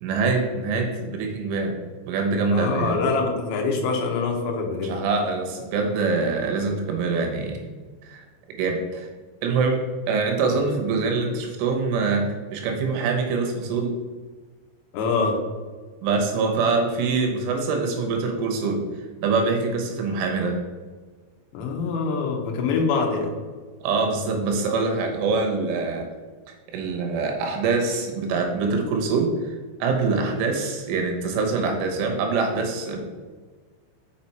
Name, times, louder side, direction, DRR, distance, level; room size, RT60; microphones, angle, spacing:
voice 1, 0.0-1.8 2.1-3.0 4.8-7.7 8.0-9.1 9.4-14.0 16.0-18.8 19.2-20.6 23.8-26.1 26.7-33.0, right 4 dB, 80° right, 2 dB, 3.6 m, -24 dB
voice 2, 2.5-4.9 14.9-15.4 21.5-23.3, left 4 dB, 75° left, 1 dB, 3.2 m, -24 dB
6.9 x 6.0 x 4.3 m, 1.4 s
omnidirectional pair, 5.6 m